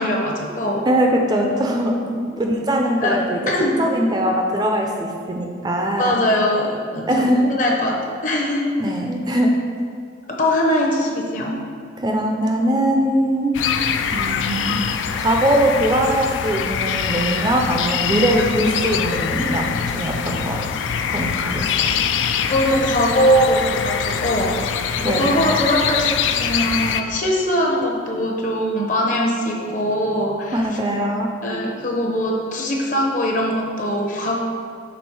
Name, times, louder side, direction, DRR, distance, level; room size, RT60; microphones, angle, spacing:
voice 1, 0.0-0.8 1.5-2.2 3.0-3.2 3.5-3.8 6.0-8.7 10.3-11.6 22.5-24.5 25.0-30.6 31.4-34.4, equal, 45° left, 0 dB, 0.8 m, -21 dB
voice 2, 0.9-2.0 2.3-3.4 3.8-6.2 7.1-7.5 8.8-9.5 12.0-13.6 14.1-20.7 21.1-22.0 25.0-25.4 30.5-31.3, right 1 dB, 20° right, 1 dB, 0.4 m, -21 dB
sound 1, 13.5-27.0, left 7 dB, 85° left, 0.3 m, -23 dB
6.1 x 3.6 x 4.6 m, 2.2 s
head